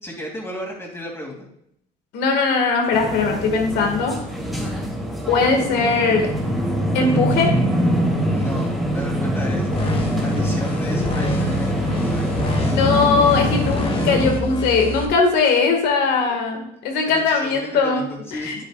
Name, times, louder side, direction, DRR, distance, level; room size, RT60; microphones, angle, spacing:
voice 1, 0.0-1.5 8.3-9.7 10.2-12.3 17.1-18.5, equal, 15° left, -2 dB, 2.7 m, -33 dB
voice 2, 2.1-4.1 5.3-6.3 6.9-7.6 12.7-18.1 18.3-18.6, left 4 dB, 85° left, 3 dB, 2.0 m, -19 dB
sound 1, 2.9-14.3, equal, ahead, 2.5 m, -23 dB
sound 2, 9.7-15.1, left 4 dB, 35° left, 1.5 m, -28 dB
9.4 x 9.0 x 2.5 m, 0.72 s
cardioid pair, 110°, 17 cm